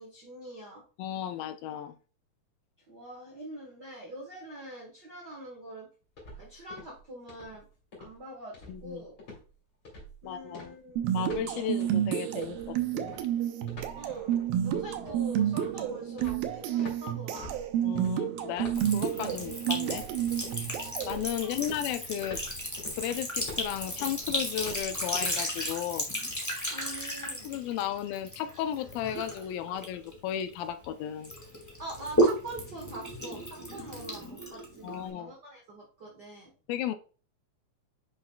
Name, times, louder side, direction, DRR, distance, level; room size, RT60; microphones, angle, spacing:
voice 1, 0.0-0.8 2.9-5.9 6.4-7.7 8.0-9.1 10.2-11.0 13.9-17.5 21.4-21.7 26.7-27.5 31.8-36.5, right 1 dB, 60° right, -1 dB, 1.0 m, -44 dB
voice 2, 1.0-2.0 8.7-9.0 10.2-10.7 11.1-13.1 17.8-20.0 20.6-20.7 21.0-22.4 22.9-26.1 27.2-31.3 34.8-35.3 36.7-37.0, left 10 dB, 80° left, 10 dB, 2.3 m, -34 dB
sound 1, 6.2-7.0 7.3-7.6 7.9-8.2 8.5-8.9 9.2-9.5 9.9-10.2 10.5-11.5 11.8-12.0 12.4-17.0 17.4-18.1 18.6-19.4 19.9-20.7 21.0-25.3, left 1 dB, 35° left, 3.3 m, -46 dB
sound 2, 11.0-21.2, right 10 dB, 80° right, 2.6 m, -30 dB
Sink (filling or washing) / Trickle dribble, 18.7-30.9 31.2-35.1, equal, 20° left, 0.4 m, -34 dB
8.0 x 5.9 x 2.3 m, 0.37 s
omnidirectional pair, 4.2 m